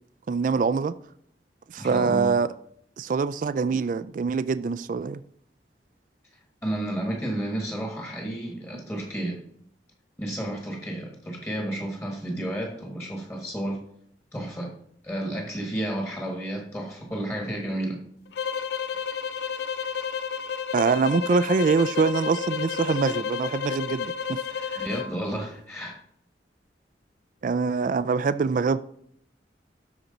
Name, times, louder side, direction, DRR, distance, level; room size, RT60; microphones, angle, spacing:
voice 1, 0.3-0.9 1.7-2.5 3.0-5.2 20.7-24.9 27.4-28.8, right 5 dB, 45° right, 0.3 m, -24 dB
voice 2, 1.8-2.3 6.6-9.4 10.2-13.8 14.3-14.7 15.0-18.0 24.8-26.0, right 1 dB, 15° left, 1.3 m, -31 dB
sound 1, 18.3-25.1, left 7 dB, 65° left, 0.4 m, -31 dB
12.5 x 4.4 x 3.9 m
head